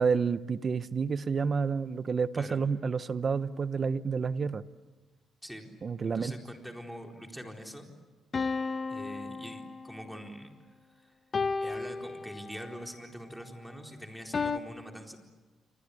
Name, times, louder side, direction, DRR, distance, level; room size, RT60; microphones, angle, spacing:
voice 1, 0.0-4.6 5.8-6.3, right 5 dB, 40° right, 14 dB, 0.9 m, -29 dB
voice 2, 5.4-5.8 6.0-7.9 8.9-11.1 11.6-15.2, equal, ahead, 2 dB, 4.1 m, -44 dB
sound 1, 8.3-10.1 11.3-12.8 14.3-14.6, left 4 dB, 40° left, 1.2 m, -33 dB
29.5 x 24.0 x 8.4 m, 1.3 s
cardioid pair, 90°, 0 cm